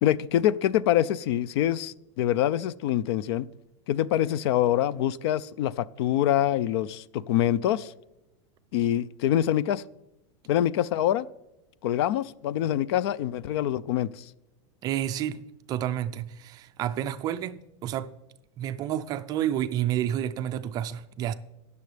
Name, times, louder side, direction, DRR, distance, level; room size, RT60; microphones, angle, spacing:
voice 1, 0.0-3.5 3.9-7.9 8.7-9.8 10.5-11.3 11.8-14.2, left 12 dB, 60° left, 0.4 m, -25 dB
voice 2, 14.8-18.1 18.6-21.3, right 11 dB, 25° right, 0.4 m, -30 dB
20.0 x 6.8 x 3.3 m
supercardioid pair, 160°, 16 cm